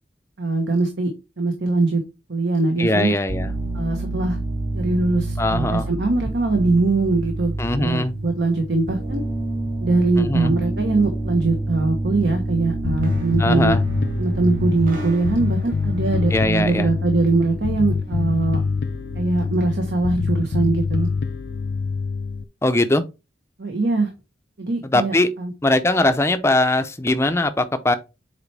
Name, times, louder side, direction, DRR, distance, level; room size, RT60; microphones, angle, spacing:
voice 1, 0.4-1.1 1.4-2.0 2.3-3.1 3.7-4.4 4.7-9.2 9.8-13.8 14.2-18.6 19.1-21.1 23.6-24.1 24.6-25.5, right 3 dB, 70° right, 1.1 m, -22 dB
voice 2, 2.8-3.5 5.4-5.9 7.6-8.1 10.2-10.5 13.4-13.8 16.3-16.9 22.6-23.0 24.8-25.3 25.6-27.9, left 2 dB, 15° left, 0.6 m, -20 dB
sound 1, 3.3-20.7, right 2 dB, 50° right, 2.4 m, -29 dB
Bass guitar, 12.8-22.4, left 4 dB, 65° left, 0.5 m, -25 dB
7.3 x 4.4 x 3.3 m
head